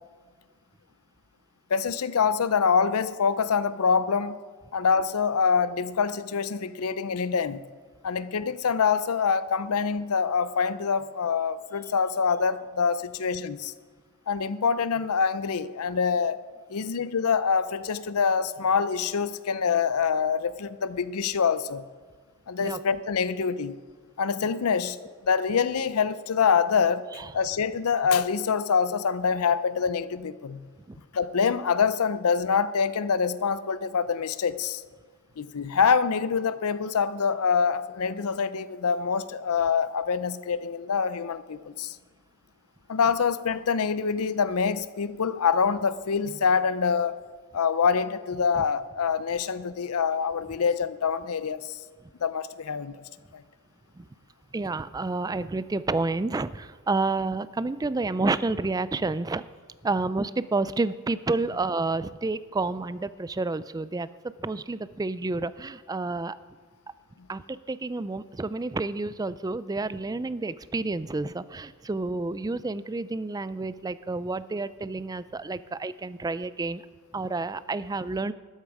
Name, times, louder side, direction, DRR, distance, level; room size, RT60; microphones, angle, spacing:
voice 1, 1.7-4.4 4.7-7.6 8.0-13.7 14.3-16.4 16.7-21.8 22.5-23.8 24.2-27.1 27.3-30.7 31.1-34.8 35.4-42.0 42.9-47.2 47.5-51.8 52.2-53.0 53.3-53.4, left 6 dB, 80° left, 15 dB, 0.6 m, -25 dB
voice 2, 54.5-59.5 59.8-64.1 64.4-66.4 67.3-76.8 77.1-78.3, right 3 dB, 15° right, 16 dB, 0.3 m, -29 dB
13.0 x 11.5 x 4.8 m, 1.5 s
head